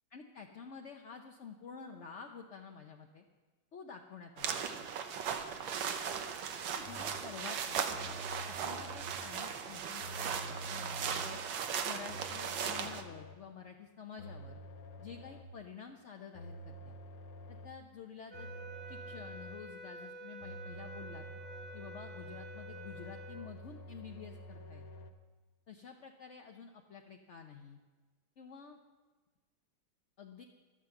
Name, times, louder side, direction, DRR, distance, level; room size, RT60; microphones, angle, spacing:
voice 1, 0.1-3.2 3.7-4.6 6.7-7.9 8.5-11.4 11.8-14.6 15.0-17.0 17.5-18.5 18.9-21.2 21.7-24.8 25.7-27.8 28.4-28.8 30.2-30.4, left 6 dB, 60° left, 3 dB, 0.8 m, -50 dB
sound 1, 4.4-13.0, right 7 dB, 70° right, 1.6 m, -38 dB
sound 2, 6.8-7.4 7.9-9.4 10.0-11.5 12.1-13.5 14.2-15.6 16.3-17.9 18.3-19.7 20.4-25.1, equal, 80° left, 1.8 m, -49 dB
sound 3, 18.3-23.5, right 1 dB, 30° right, 1.5 m, -49 dB
12.5 x 10.5 x 7.1 m, 1.3 s
omnidirectional pair, 2.2 m